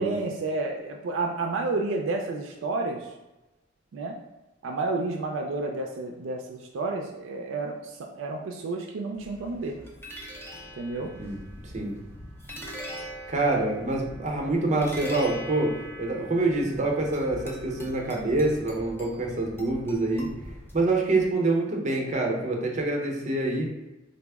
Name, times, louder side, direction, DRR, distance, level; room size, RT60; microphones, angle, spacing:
voice 1, 0.0-3.1 3.9-4.2 4.6-9.8 10.8-11.1, right 3 dB, 75° right, 2 dB, 0.4 m, -30 dB
sound 1, 9.1-21.2, right 1 dB, 10° left, 0.5 m, -42 dB
voice 2, 11.2-11.9 13.3-20.3 20.7-23.7, right 2 dB, 40° right, 0 dB, 0.7 m, -26 dB
4.1 x 2.0 x 3.4 m, 1.0 s
head